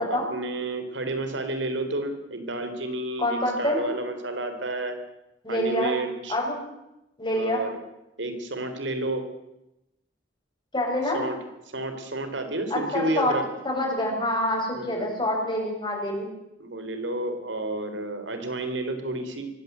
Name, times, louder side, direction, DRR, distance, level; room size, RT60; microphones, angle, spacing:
voice 1, 0.0-5.0 5.5-6.4 7.4-7.8 8.2-9.2 11.0-11.4 11.7-13.5 14.7-15.1 16.6-19.5, right 2 dB, 70° right, 8 dB, 3.8 m, -31 dB
voice 2, 3.2-3.8 5.4-5.9 6.3-6.5 7.2-7.6 10.7-11.2 12.7-13.4 13.6-16.3, left 1 dB, 25° left, 0 dB, 7.4 m, -26 dB
23.5 x 17.0 x 8.1 m, 0.90 s
head